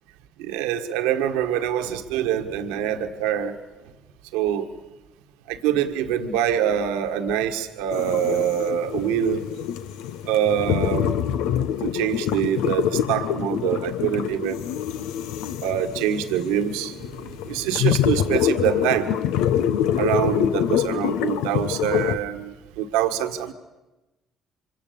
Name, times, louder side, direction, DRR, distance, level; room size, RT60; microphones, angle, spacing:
voice 1, 0.5-3.6 4.3-4.7 5.5-9.4 10.2-11.1 11.8-14.6 15.6-16.9 17.5-19.1 20.0-23.5, right 10 dB, 85° right, 7 dB, 1.6 m, -24 dB
sound 1, 7.9-22.1, left 10 dB, 80° left, 1.0 m, -25 dB
25.5 x 25.0 x 7.0 m, 1.1 s
hypercardioid pair, 55°, 0 cm